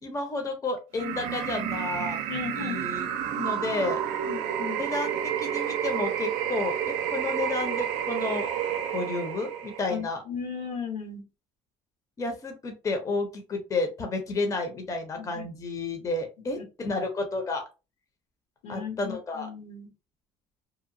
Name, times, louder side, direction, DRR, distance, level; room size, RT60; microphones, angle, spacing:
voice 1, 0.0-2.2 2.6-3.1 3.4-4.0 4.8-8.5 8.9-10.2 12.2-17.6 18.7-19.5, left 3 dB, 25° left, 4 dB, 0.6 m, -31 dB
sound 1, 0.9-10.0, right 9 dB, 80° right, 0.4 m, -30 dB
voice 2, 2.3-2.8 3.3-3.5 4.3-4.8 9.9-11.2 15.2-15.5 16.6-17.0 18.6-19.9, left 6 dB, 85° left, 2 dB, 1.2 m, -36 dB
2.8 x 2.1 x 2.6 m, 0.30 s
cardioid pair, 115°, 13 cm